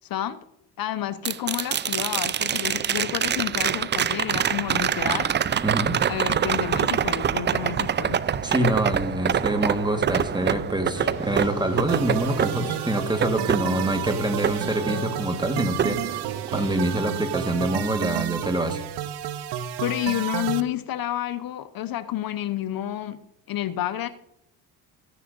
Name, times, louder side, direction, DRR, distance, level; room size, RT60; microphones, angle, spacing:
voice 1, 0.8-5.3 6.1-8.2 19.8-23.2 23.5-24.1, left 12 dB, 50° left, 12 dB, 0.8 m, -30 dB
sound 1, 1.2-15.3 15.8-16.8 19.1-19.2, right 8 dB, 25° right, 0.5 m, -26 dB
voice 2, 5.6-6.0 8.4-18.8, right 1 dB, 10° right, 7 dB, 1.5 m, -26 dB
sound 2, 10.9-17.7, equal, 40° right, 4.9 m, -40 dB
sound 3, 11.9-20.6, right 11 dB, 60° right, 0.9 m, -31 dB
15.0 x 9.9 x 2.6 m, 0.80 s
supercardioid pair, 75°, 46 cm